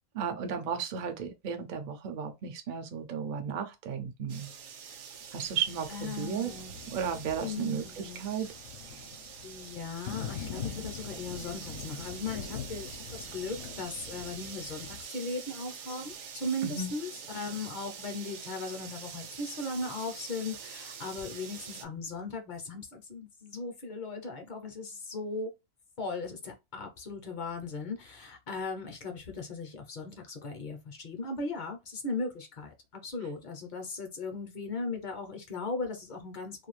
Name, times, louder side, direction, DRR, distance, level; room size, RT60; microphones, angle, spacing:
voice 1, 0.1-4.5 5.3-6.5 6.9-8.5 16.6-16.9, right 7 dB, 60° right, 0.5 m, -34 dB
sound 1, 4.3-21.8, right 7 dB, 75° right, 0.9 m, -45 dB
Thunder, 5.4-15.0, left 8 dB, 70° left, 0.9 m, -44 dB
voice 2, 5.9-6.8 7.4-8.2 9.4-25.5 26.0-36.7, left 3 dB, 45° left, 0.6 m, -38 dB
2.5 x 2.3 x 3.1 m
omnidirectional pair, 1.4 m